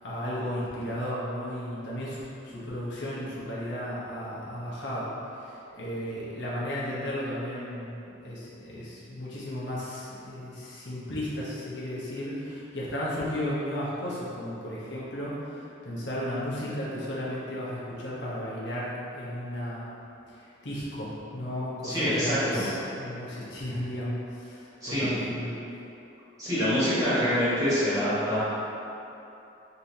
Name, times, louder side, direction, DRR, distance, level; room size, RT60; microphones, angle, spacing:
voice 1, 0.0-5.1 5.3-20.0 20.3-25.6, equal, 70° left, -8 dB, 0.9 m, -34 dB
voice 2, 21.8-22.6 24.8-25.2 26.4-28.4, equal, 20° right, -12 dB, 1.3 m, -25 dB
5.4 x 3.0 x 2.7 m, 2.9 s
head